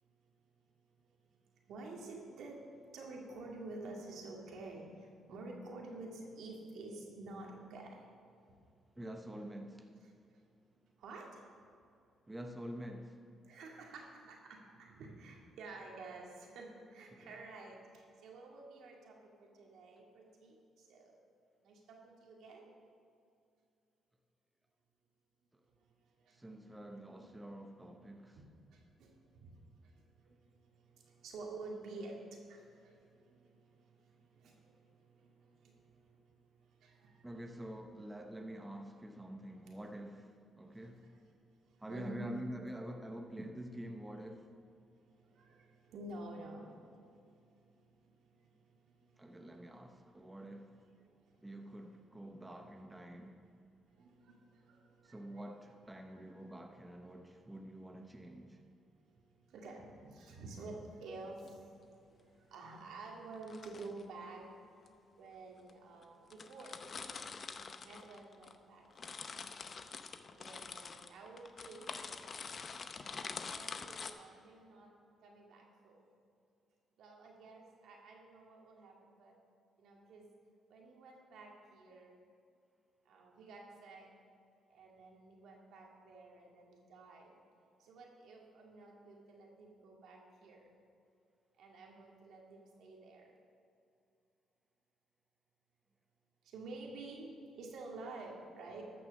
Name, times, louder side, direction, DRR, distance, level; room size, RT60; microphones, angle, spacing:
voice 1, 1.7-2.6 2.9-8.1 9.0-9.1 10.0-10.1 11.0-11.4 13.5-21.2 21.6-22.7 26.2-27.3 28.7-30.4 30.7-37.4 37.7-37.8 39.7-39.8 40.7-41.3 41.7-42.3 45.0-46.8 47.1-47.4 48.0-49.8 50.5-50.9 51.2-52.0 53.9-55.5 56.0-56.5 57.9-58.1 59.1-59.2 59.5-64.4 65.2-67.3 67.8-69.2 70.3-72.1 73.5-74.9 75.2-76.1 77.0-79.4 79.8-80.3 80.7-82.2 83.1-84.1 84.7-87.4 87.8-90.6 91.6-93.3 96.4-98.8, right 2 dB, 75° right, 2.3 m, -51 dB
voice 2, 9.0-9.9 12.3-13.2 17.2-17.3 26.4-28.4 37.2-40.3 40.6-41.0 41.8-44.5 49.2-50.7 51.4-53.4 55.1-58.6, right 1 dB, 10° right, 0.9 m, -47 dB
sound 1, 61.2-61.5 63.3-64.0 64.9-65.0 65.7-65.8 66.0-66.1 66.3-68.6 68.8-74.1, left 5 dB, 45° left, 0.7 m, -46 dB
13.5 x 6.2 x 6.6 m
cardioid pair, 90°, 0 cm